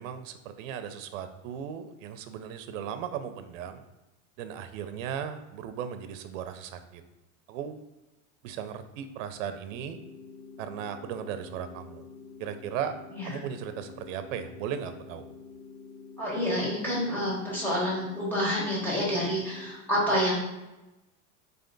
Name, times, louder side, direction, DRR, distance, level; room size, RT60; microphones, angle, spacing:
voice 1, 0.0-3.9 4.4-7.0 7.5-7.7 8.4-10.0 10.6-12.0 12.4-13.0 13.3-15.2, right 8 dB, 85° right, 9 dB, 0.6 m, -36 dB
sound 1, 9.7-19.7, left 5 dB, 25° left, 1.5 m, -48 dB
voice 2, 16.2-20.4, equal, 5° left, -7 dB, 1.4 m, -28 dB
3.9 x 3.4 x 3.8 m, 1.0 s
supercardioid pair, 155°, 38 cm